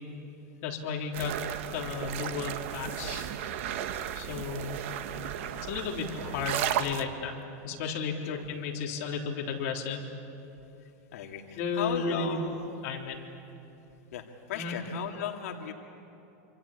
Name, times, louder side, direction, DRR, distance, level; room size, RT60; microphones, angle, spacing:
voice 1, 0.6-1.4 1.7-3.3 4.1-4.8 5.7-7.3 7.6-10.0 11.6-12.4 12.8-13.2 14.5-14.7, left 5 dB, 45° left, -1 dB, 3.7 m, -33 dB
sound 1, 1.1-7.0, right 10 dB, 55° right, 1.3 m, -34 dB
voice 2, 10.8-12.8 14.1-15.7, left 9 dB, 70° left, 2 dB, 2.3 m, -37 dB
27.0 x 26.0 x 8.6 m, 2.9 s
supercardioid pair, 170°, 8 cm